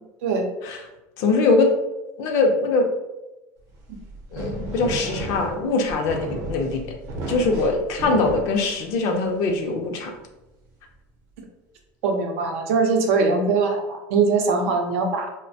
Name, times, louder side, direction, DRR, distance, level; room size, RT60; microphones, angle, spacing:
voice 1, 1.2-1.7 2.2-2.9 4.3-6.9 7.3-10.1, left 3 dB, 55° left, 3 dB, 0.5 m, -22 dB
sound 1, 3.7-9.4, right 2 dB, 50° right, 0.7 m, -33 dB
voice 2, 12.0-15.3, right 4 dB, 85° right, 2 dB, 0.6 m, -21 dB
3.1 x 2.1 x 2.6 m, 1.0 s
supercardioid pair, 145°, 7 cm